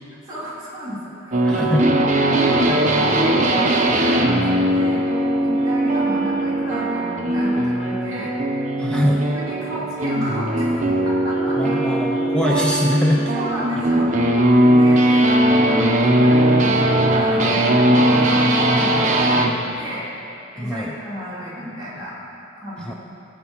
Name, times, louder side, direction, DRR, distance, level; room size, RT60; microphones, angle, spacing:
voice 1, 0.3-1.5 2.0-5.0 5.4-8.3 8.9-10.8 11.1-11.8 13.3-14.1 14.7-20.1 20.5-22.1 22.6-23.0, equal, 20° right, -9 dB, 3.3 m, -32 dB
sound 1, 1.3-19.6, right 1 dB, 35° right, 1.0 m, -19 dB
voice 2, 1.4-2.0 8.8-9.2 11.6-13.3 20.6-20.9 22.8-22.9, left 1 dB, 5° left, -1 dB, 0.5 m, -22 dB
18.0 x 8.3 x 4.6 m, 2.8 s
head